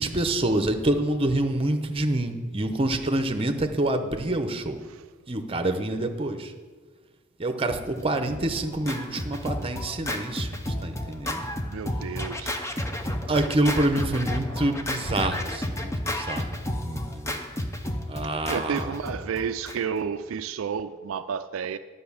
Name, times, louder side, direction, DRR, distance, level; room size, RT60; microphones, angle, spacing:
voice 1, 0.0-4.8 5.3-6.5 7.4-10.5 10.8-11.4 13.3-16.6 16.8-17.4 18.1-18.9, right 1 dB, 30° right, 7 dB, 0.8 m, -27 dB
Scratching (performance technique), 8.0-20.1, left 1 dB, 15° left, 0.7 m, -32 dB
voice 2, 11.7-12.6 18.5-21.8, right 7 dB, 75° right, 10 dB, 0.4 m, -31 dB
10.0 x 5.5 x 7.1 m, 1.4 s
head